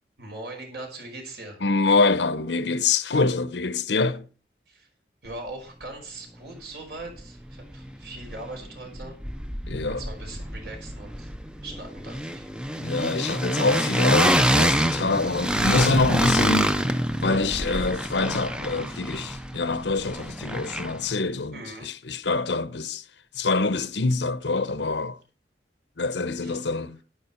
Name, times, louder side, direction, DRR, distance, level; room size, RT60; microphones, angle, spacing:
voice 1, 0.2-1.6 4.7-4.9 5.2-9.2 10.0-11.3 11.6-12.5 21.5-21.9 26.4-26.6, right 2 dB, 65° right, 5.4 m, -40 dB
voice 2, 1.6-4.3 9.7-10.0 12.7-16.8 17.2-23.0 23.3-25.2 26.0-27.0, left 3 dB, 85° left, 0.9 m, -25 dB
sound 1, 7.2-7.3 7.5-8.7 8.9-21.1, equal, 5° right, 0.6 m, -26 dB
12.0 x 10.5 x 4.4 m
head